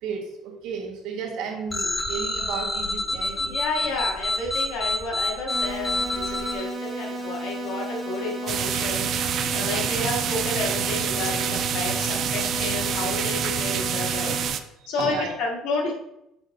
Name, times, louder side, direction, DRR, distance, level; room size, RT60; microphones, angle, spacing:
voice 1, 0.0-3.6 4.0-4.1 14.8-15.5, right 5 dB, 75° right, 1 dB, 1.4 m, -33 dB
sound 1, 1.7-6.5, left 2 dB, 10° left, 0.7 m, -27 dB
voice 2, 3.5-14.3 14.9-15.9, left 3 dB, 80° left, 0 dB, 1.6 m, -31 dB
sound 2, 5.5-14.5, right 1 dB, 10° right, 1.9 m, -33 dB
sound 3, 8.5-14.6, right 8 dB, 45° right, 0.4 m, -27 dB
6.1 x 5.9 x 2.6 m, 0.84 s
cardioid pair, 145°, 0 cm